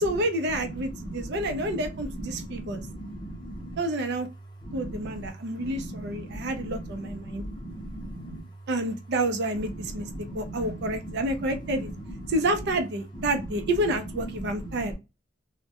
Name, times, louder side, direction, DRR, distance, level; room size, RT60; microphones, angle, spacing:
voice 1, 0.0-2.8 3.8-4.3 4.7-7.4 8.7-10.1 10.3-11.9 12.3-15.0, right 1 dB, 55° right, 0.5 m, -29 dB
voice 2, 1.1-1.8 2.2-3.7 4.6-5.3 5.6-6.8 7.0-8.4 9.9-11.1 11.8-12.1 14.4-15.0, right 1 dB, 25° left, 0.7 m, -38 dB
2.1 x 2.1 x 2.8 m
head